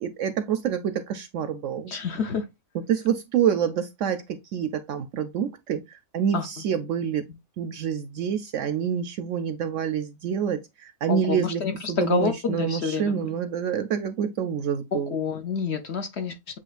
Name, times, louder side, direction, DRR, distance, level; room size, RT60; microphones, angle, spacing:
voice 1, 0.0-1.9 2.9-7.3 7.6-11.6 11.9-15.1, right 8 dB, 65° right, 0.8 m, -27 dB
voice 2, 1.9-2.4 6.3-6.5 11.1-13.3 14.9-16.6, left 5 dB, 55° left, 0.9 m, -28 dB
7.4 x 2.8 x 2.4 m
omnidirectional pair, 1.6 m